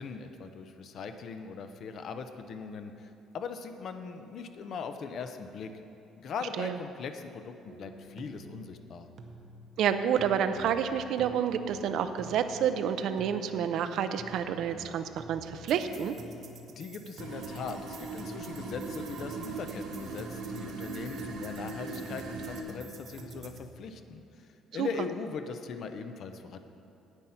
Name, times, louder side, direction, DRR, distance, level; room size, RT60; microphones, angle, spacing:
voice 1, 0.0-5.7 6.2-9.1 16.8-24.2 24.7-26.6, left 5 dB, 40° left, 8 dB, 0.6 m, -40 dB
sound 1, 7.7-23.7, right 2 dB, 35° right, 0.8 m, -48 dB
voice 2, 9.8-16.1 24.8-24.9, right 8 dB, 55° right, 9 dB, 0.5 m, -29 dB
sound 2, 17.2-22.6, right 4 dB, 80° right, 1.7 m, -40 dB
9.7 x 9.0 x 5.7 m, 2.7 s
cardioid pair, 175°, 0 cm